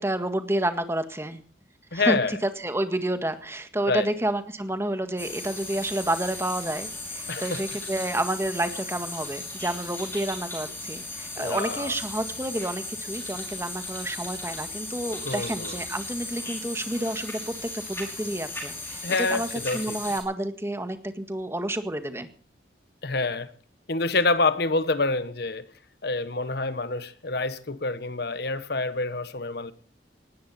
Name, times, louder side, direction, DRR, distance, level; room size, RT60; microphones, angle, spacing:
voice 1, 0.0-1.4 1.9-22.3, right 1 dB, 15° right, 1.7 m, -30 dB
voice 2, 1.9-2.4 3.9-4.1 7.3-7.7 11.4-11.9 15.2-15.8 19.0-20.0 23.0-23.5 23.9-25.6 26.0-29.7, left 3 dB, 55° left, 1.1 m, -27 dB
sound 1, 5.2-20.2, left 2 dB, 10° left, 5.6 m, -36 dB
19.5 x 17.5 x 4.3 m
head